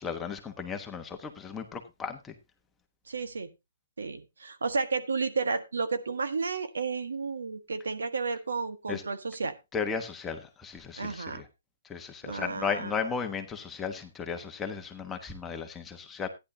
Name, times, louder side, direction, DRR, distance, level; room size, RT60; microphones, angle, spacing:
voice 1, 0.0-2.3 8.9-9.0 9.7-11.4 11.8-16.3, left 5 dB, 10° left, 5 dB, 1.1 m, -35 dB
voice 2, 3.1-3.5 4.0-9.6 11.0-11.4 12.2-12.9, right 4 dB, 90° right, 10 dB, 1.5 m, -32 dB
14.0 x 10.5 x 2.8 m, 0.23 s
hypercardioid pair, 160°, 0 cm